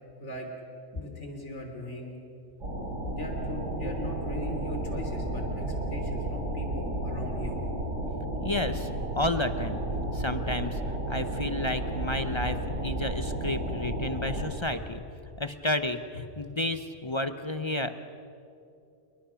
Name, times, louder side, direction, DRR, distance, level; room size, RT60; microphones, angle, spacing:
voice 1, 0.9-2.2 3.1-5.6 5.9-7.6 14.6-14.7, left 1 dB, 65° left, 3 dB, 3.7 m, -39 dB
sound 1, 2.6-14.5, right 1 dB, 85° right, 4.4 m, -32 dB
voice 2, 8.4-8.9 9.1-9.8 10.1-10.8 11.1-15.0 15.4-17.9, left 1 dB, 30° left, 9 dB, 0.6 m, -31 dB
28.5 x 22.0 x 5.8 m, 2.6 s
omnidirectional pair, 1.3 m